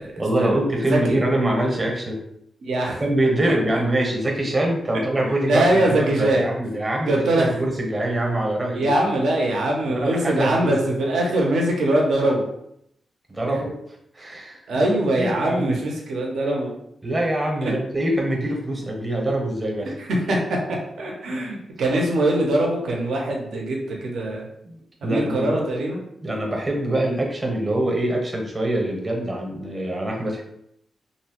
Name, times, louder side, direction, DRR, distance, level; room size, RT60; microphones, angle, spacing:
voice 1, 0.2-2.2 3.0-8.9 9.9-10.7 13.3-13.7 14.1-14.6 15.2-15.7 17.0-19.9 24.6-25.6 26.2-30.4, right 1 dB, 30° right, 1 dB, 0.7 m, -24 dB
voice 2, 0.9-1.2 2.6-3.0 3.4-3.5 4.9-5.0 5.5-6.5 7.1-7.6 8.7-12.5 13.4-13.5 14.7-16.7 17.6-17.7 20.0-24.5 25.0-26.0, right 1 dB, 85° right, -1 dB, 0.5 m, -22 dB
2.6 x 2.1 x 2.8 m, 0.76 s
cardioid pair, 80°, 0 cm